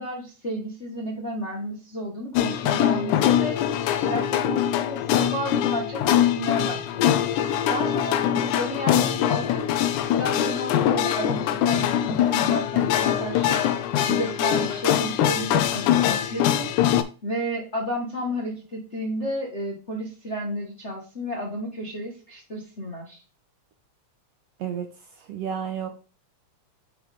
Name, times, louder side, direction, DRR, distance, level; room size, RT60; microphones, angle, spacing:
voice 1, 0.0-3.7 4.0-9.6 10.1-16.7 17.2-23.2, equal, 40° left, -2 dB, 1.0 m, -32 dB
sound 1, 2.3-17.0, left 10 dB, 90° left, 2.2 m, -23 dB
voice 2, 25.2-25.9, right 8 dB, 70° right, 4 dB, 1.7 m, -31 dB
6.2 x 5.8 x 3.4 m, 0.35 s
omnidirectional pair, 3.5 m